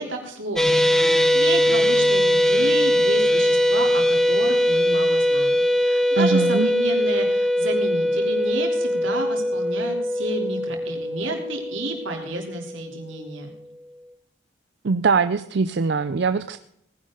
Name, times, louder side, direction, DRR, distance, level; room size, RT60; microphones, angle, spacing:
voice 1, 0.0-5.5 5.8-13.5, right 2 dB, 85° right, 2 dB, 3.3 m, -31 dB
sound 1, 0.6-12.9, left 1 dB, ahead, 0.8 m, -21 dB
voice 2, 6.2-6.7 14.8-16.6, right 4 dB, 60° right, 12 dB, 0.5 m, -22 dB
19.0 x 10.5 x 3.8 m, 0.72 s
head